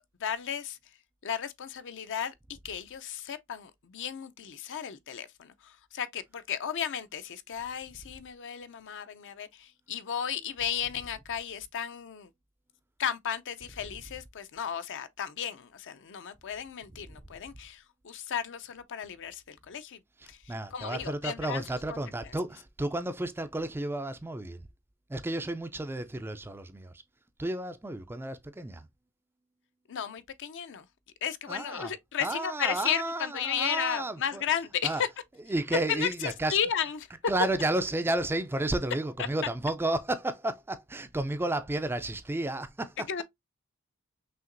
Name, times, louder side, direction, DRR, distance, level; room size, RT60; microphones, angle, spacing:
voice 1, 0.2-0.8 1.2-2.3 2.6-12.3 13.0-20.0 20.3-21.6 21.9-22.0 29.9-30.9 31.2-35.1 35.9-37.1 39.2-39.3 43.1-43.2, left 8 dB, 55° left, 0.5 m, -34 dB
voice 2, 20.2-24.7 25.1-26.9 27.4-28.9 31.5-31.9 32.2-34.4 34.8-35.0 35.5-36.6 37.3-43.2, right 2 dB, 10° right, 0.3 m, -32 dB
5.6 x 2.9 x 2.5 m
head